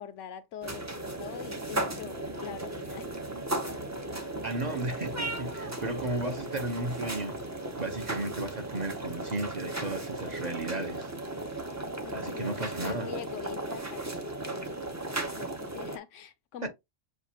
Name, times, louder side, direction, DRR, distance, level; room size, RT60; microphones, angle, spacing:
voice 1, 0.0-3.1 12.0-16.7, left 10 dB, 85° left, 1.0 m, -44 dB
sound 1, 0.6-16.0, right 2 dB, 20° right, 0.5 m, -36 dB
voice 2, 4.4-7.4 7.8-11.1 12.1-13.1 16.6-16.7, right 2 dB, 40° right, 0.9 m, -34 dB
6.4 x 2.5 x 2.8 m
omnidirectional pair, 1.2 m